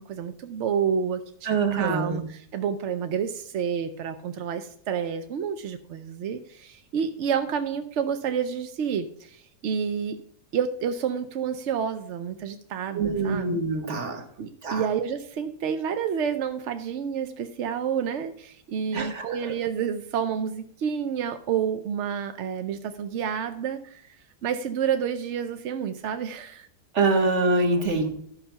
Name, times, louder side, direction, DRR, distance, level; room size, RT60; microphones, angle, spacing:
voice 1, 0.0-10.2 10.5-13.5 14.4-24.0 24.4-26.7, right 7 dB, 65° right, 8 dB, 0.7 m, -29 dB
voice 2, 1.4-2.2 12.9-14.2 14.6-14.8 18.9-19.5 26.9-28.1, right 3 dB, 45° right, 6 dB, 1.4 m, -25 dB
11.5 x 5.6 x 5.6 m, 0.63 s
omnidirectional pair, 1.8 m